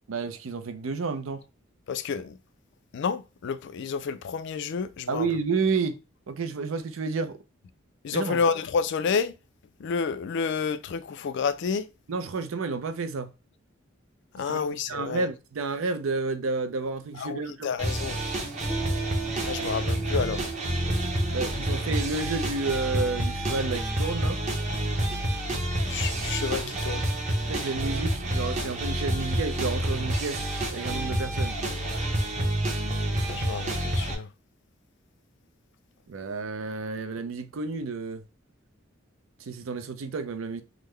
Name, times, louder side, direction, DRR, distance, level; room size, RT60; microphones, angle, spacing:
voice 1, 0.1-1.4 5.1-6.0 6.3-7.4 8.1-8.4 12.1-13.3 14.5-17.7 21.3-24.4 27.5-31.6 36.1-38.2 39.4-40.6, right 4 dB, 80° right, 0.5 m, -30 dB
voice 2, 1.9-2.4 2.9-5.3 8.0-9.3 9.8-11.9 14.3-15.3 17.1-18.2 19.4-20.4 25.8-27.1 33.3-34.3, left 5 dB, 60° left, 0.3 m, -29 dB
sound 1, 17.8-34.1, right 1 dB, 35° right, 0.8 m, -28 dB
Piano, 18.7-25.9, right 7 dB, 10° left, 0.6 m, -41 dB
3.7 x 2.1 x 3.1 m
head